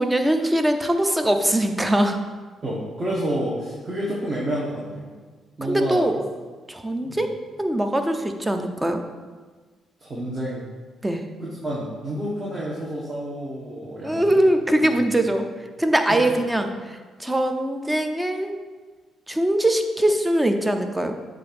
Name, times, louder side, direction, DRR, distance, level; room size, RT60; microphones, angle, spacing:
voice 1, 0.0-2.2 5.6-6.2 6.7-9.0 11.0-11.3 14.0-15.5 15.8-18.6 19.3-21.2, right 1 dB, 10° right, 6 dB, 0.6 m, -22 dB
voice 2, 2.6-5.1 5.6-6.1 7.0-7.2 10.0-10.7 11.4-14.4 14.8-15.0 16.1-16.2, right 1 dB, 30° right, -6 dB, 1.2 m, -29 dB
7.5 x 2.6 x 5.2 m, 1.4 s
cardioid pair, 90°, 0 cm